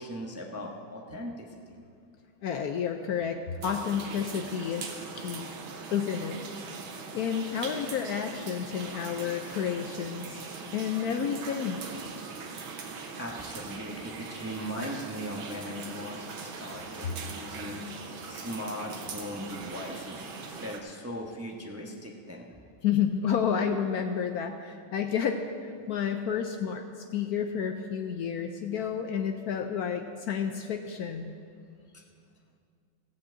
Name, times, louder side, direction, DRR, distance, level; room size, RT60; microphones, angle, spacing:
voice 1, 0.0-1.8 13.2-17.8 18.3-20.2 20.6-22.5 31.9-32.0, equal, 20° right, -1 dB, 0.3 m, -39 dB
voice 2, 2.4-5.5 5.9-6.4 7.1-11.8 22.8-31.3, left 7 dB, 75° left, 6 dB, 0.8 m, -30 dB
sound 1, 3.6-20.8, right 5 dB, 80° right, 1.9 m, -41 dB
16.0 x 5.7 x 7.7 m, 2.3 s
omnidirectional pair, 2.2 m